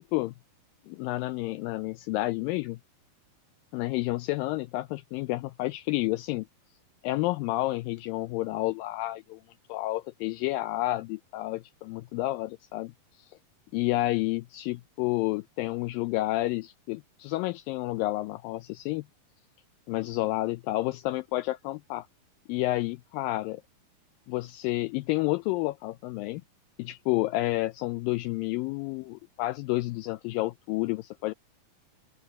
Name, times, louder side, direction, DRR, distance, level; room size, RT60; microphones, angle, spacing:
voice 1, 0.9-2.8 3.7-6.5 7.0-9.4 9.7-12.9 13.2-13.4 13.7-19.0 19.9-22.1 22.5-23.6 24.3-26.4 26.8-31.3, left 18 dB, 85° left, 2.0 m, -30 dB
open air
omnidirectional pair, 4.5 m